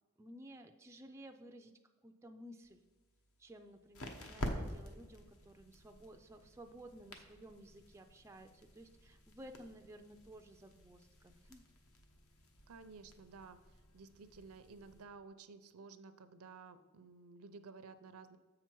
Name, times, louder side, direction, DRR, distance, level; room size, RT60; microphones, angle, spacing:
voice 1, 0.2-1.7 2.0-2.8 3.4-11.6, right 1 dB, 10° right, 5 dB, 0.3 m, -55 dB
sound 1, 2.6-15.0, left 1 dB, 70° left, 1.0 m, -49 dB
voice 2, 12.7-18.4, right 4 dB, 75° right, 11 dB, 0.5 m, -54 dB
7.5 x 5.8 x 4.5 m, 1.4 s
head